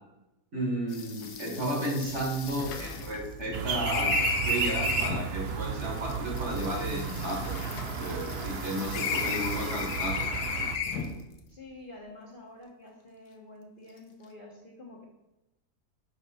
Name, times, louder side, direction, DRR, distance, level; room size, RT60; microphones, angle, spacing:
voice 1, 0.5-4.2 4.4-7.6 8.0-10.3, right 1 dB, 45° right, -1 dB, 1.7 m, -33 dB
sound 1, 0.9-3.9 4.4-5.1 5.3-10.4 10.7-11.5 13.9-14.3, left 6 dB, 55° left, 0.6 m, -46 dB
sound 2, 1.2-1.3 1.6-1.7 2.0-5.3 6.2-8.6 8.9-11.2, left 6 dB, 80° left, 1.3 m, -33 dB
sound 3, 3.5-10.8, right 6 dB, 65° right, 0.6 m, -33 dB
voice 2, 11.5-15.0, left 2 dB, 40° left, -3 dB, 1.0 m, -48 dB
5.6 x 5.5 x 4.1 m, 0.96 s
omnidirectional pair, 1.7 m